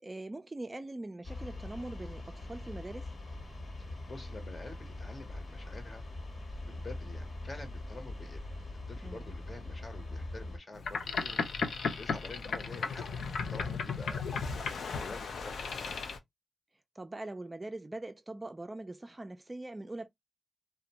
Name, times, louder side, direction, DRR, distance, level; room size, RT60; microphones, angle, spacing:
voice 1, 0.0-3.1 9.0-9.3 17.0-20.1, right 2 dB, 25° right, 0.3 m, -42 dB
sound 1, 1.2-10.6, left 2 dB, 60° left, 1.0 m, -42 dB
voice 2, 4.1-6.1 6.7-8.4 8.9-11.4 12.0-13.1 13.4-16.0, left 2 dB, 40° left, 0.8 m, -48 dB
Boat Water vehicle, 10.7-16.2, left 5 dB, 85° left, 0.4 m, -35 dB
2.5 x 2.1 x 2.8 m
cardioid pair, 75°, 0 cm